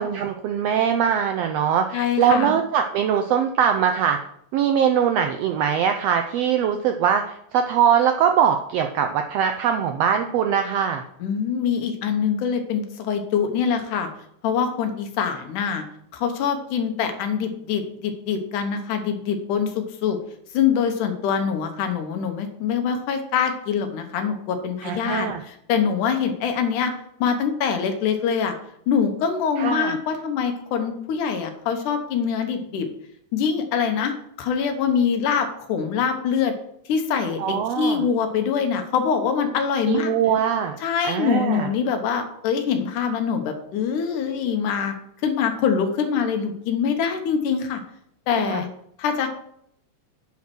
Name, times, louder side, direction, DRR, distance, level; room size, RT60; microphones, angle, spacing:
voice 1, 0.0-4.2 4.5-11.0 24.8-25.4 29.6-30.0 37.4-38.0 39.9-40.8 41.0-41.7 48.3-48.6, right 8 dB, 80° right, 6 dB, 1.4 m, -22 dB
voice 2, 1.9-2.6 11.2-14.1 14.4-15.8 16.1-20.2 20.5-26.9 27.2-28.5 28.9-32.9 33.3-34.1 34.4-36.5 36.9-40.1 40.8-44.9 45.2-47.8 48.3-48.7 49.0-49.3, left 7 dB, 85° left, 6 dB, 2.6 m, -24 dB
9.4 x 4.4 x 6.1 m, 0.72 s
omnidirectional pair, 3.5 m